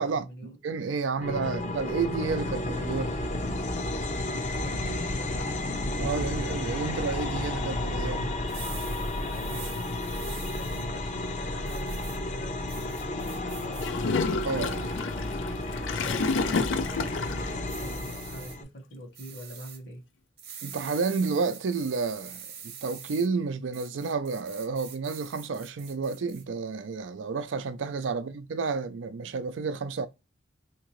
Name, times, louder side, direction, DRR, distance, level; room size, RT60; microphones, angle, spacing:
voice 1, 0.0-0.5 4.5-5.6 8.5-8.8 9.3-9.9 10.5-14.1 15.9-20.0 28.1-28.3, equal, 60° left, 1.4 m, -44 dB
voice 2, 0.6-3.1 6.0-8.3 14.4-14.9 20.6-22.4 22.8-30.1, right 4 dB, 85° right, 0.4 m, -30 dB
sound 1, 1.2-18.6, left 1 dB, 40° left, 0.6 m, -32 dB
sound 2, 8.4-10.8 11.7-12.2 12.7-13.9 14.4-14.9 15.5-15.9 17.7-18.6 19.1-19.8 20.4-23.3 23.7-26.4, right 8 dB, 55° right, 0.8 m, -45 dB
Gurgling / Toilet flush, 13.8-17.5, left 4 dB, 90° left, 0.5 m, -30 dB
3.7 x 2.8 x 3.0 m
head